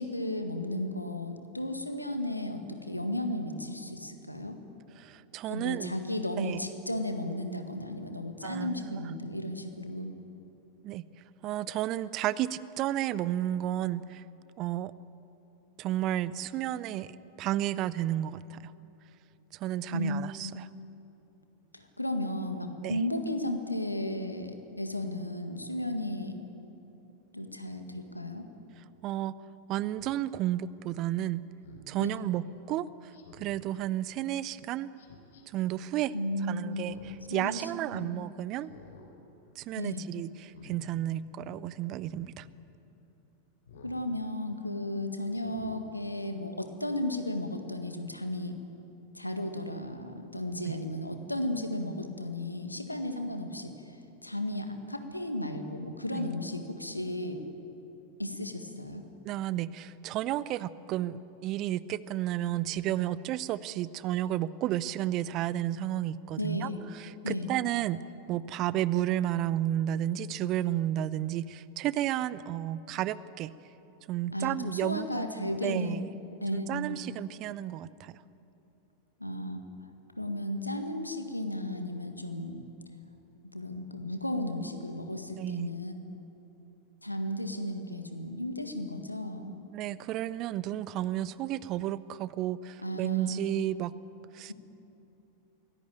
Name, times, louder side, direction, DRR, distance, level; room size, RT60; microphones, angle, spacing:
voice 1, 0.0-4.6 5.5-10.2 19.9-20.6 21.7-26.4 27.3-28.5 32.0-32.2 36.1-37.0 37.3-38.1 39.8-40.1 43.8-48.6 49.1-57.4 58.2-59.1 66.4-66.8 67.2-67.5 74.3-76.1 76.4-77.1 79.2-79.6 80.2-82.6 83.5-86.0 87.0-89.6 92.8-93.5 94.5-94.6, left 1 dB, 85° left, 7 dB, 1.8 m, -34 dB
voice 2, 5.0-5.9 6.4-6.6 8.4-9.0 10.8-11.0 11.4-14.2 14.6-14.9 15.8-17.1 17.4-18.7 19.5-20.6 22.8-23.0 29.0-29.3 29.7-31.4 31.9-34.9 35.5-36.1 36.5-38.7 39.6-42.5 50.6-50.8 56.1-56.2 59.2-66.7 66.9-68.0 68.3-73.5 74.1-76.1 76.5-78.2 85.3-85.7 86.1-86.2 89.7-93.9 94.3-94.5, right 13 dB, 35° right, 18 dB, 0.6 m, -32 dB
Speech synthesizer, 30.0-30.2 31.6-31.9 33.1-33.6 35.0-35.4 36.7-37.3 37.6-37.7 38.6-39.1 39.5-39.8 40.4-40.8 42.0-42.3 43.7-44.0 44.5-44.6 45.3-45.8 46.2-46.3, left 5 dB, 60° left, 3.5 m, -52 dB
23.5 x 17.0 x 9.1 m, 2.9 s
figure-of-eight pair, 90°, 0 cm